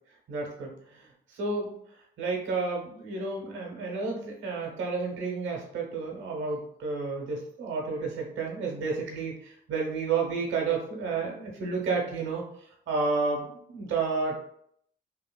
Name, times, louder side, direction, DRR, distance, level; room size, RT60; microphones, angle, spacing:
voice 1, 0.3-1.0 1.3-1.7 2.2-12.4 12.9-14.5, right 4 dB, 75° right, -1 dB, 1.1 m, -31 dB
3.2 x 2.8 x 2.3 m, 0.68 s
cardioid pair, 90°, 20 cm